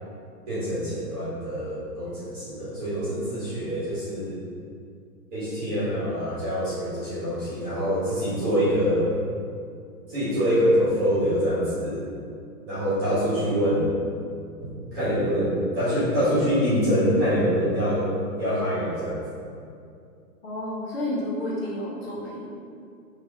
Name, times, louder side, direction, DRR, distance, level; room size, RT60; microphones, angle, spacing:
voice 1, 0.5-4.4 5.3-9.1 10.1-12.0 12.7-13.9 14.6-18.1 18.4-19.2, equal, 15° right, -11 dB, 1.5 m, -25 dB
voice 2, 20.4-22.5, left 1 dB, 40° left, -7 dB, 1.4 m, -31 dB
6.1 x 3.4 x 4.9 m, 2.4 s
hypercardioid pair, 175°, 48 cm